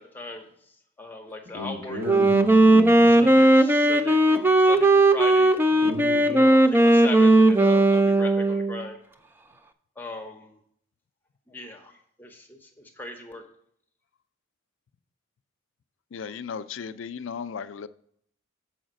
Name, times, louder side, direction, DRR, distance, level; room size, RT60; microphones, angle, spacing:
voice 1, 0.0-2.0 3.0-5.5 6.3-9.0 10.0-10.6 11.5-13.4, left 2 dB, 10° left, 0.8 m, -39 dB
voice 2, 1.5-3.3 5.8-6.5, left 2 dB, 70° right, 3.2 m, -34 dB
Wind instrument woodwind instrument, 2.0-8.8, right 1 dB, 10° right, 0.3 m, -17 dB
voice 3, 16.1-17.9, left 6 dB, 70° left, 0.4 m, -35 dB
7.1 x 5.0 x 6.3 m
head